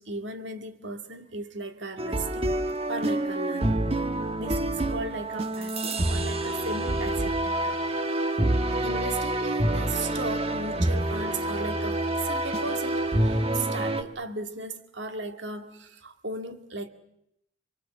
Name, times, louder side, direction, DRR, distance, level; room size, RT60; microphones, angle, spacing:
voice 1, 0.0-2.6 2.9-3.8 4.4-7.8 8.8-16.9, right 2 dB, 75° right, 2.2 m, -36 dB
sound 1, 2.0-14.0, right 1 dB, 30° right, 1.4 m, -27 dB
28.0 x 23.0 x 7.3 m
head